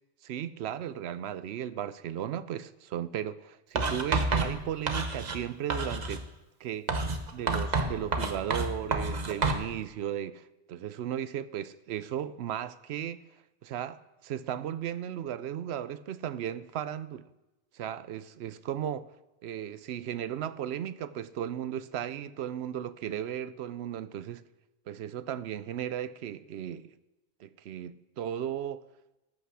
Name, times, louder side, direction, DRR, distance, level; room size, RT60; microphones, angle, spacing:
voice 1, 0.2-6.3 6.6-6.9 7.3-13.2 13.6-17.3 17.7-19.1 19.4-24.4 24.9-26.9 27.4-28.8, right 10 dB, 65° right, 0.8 m, -36 dB
Writing, 3.8-5.4 5.7-6.2 6.9-9.7, right 3 dB, 40° right, 0.9 m, -29 dB
14.5 x 5.7 x 6.3 m
omnidirectional pair, 1.2 m